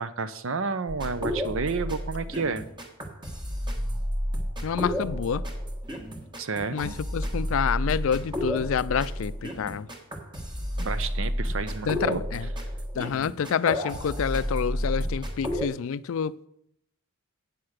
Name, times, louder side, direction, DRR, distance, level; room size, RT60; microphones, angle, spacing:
voice 1, 0.0-2.6 6.4-7.0 10.8-12.2, right 4 dB, 60° right, 0.7 m, -30 dB
sound 1, 0.9-15.7, equal, 20° right, 1.4 m, -31 dB
voice 2, 4.6-5.5 6.7-9.9 11.9-12.5 13.0-16.5, left 7 dB, 60° left, 0.4 m, -28 dB
8.4 x 7.7 x 6.4 m
head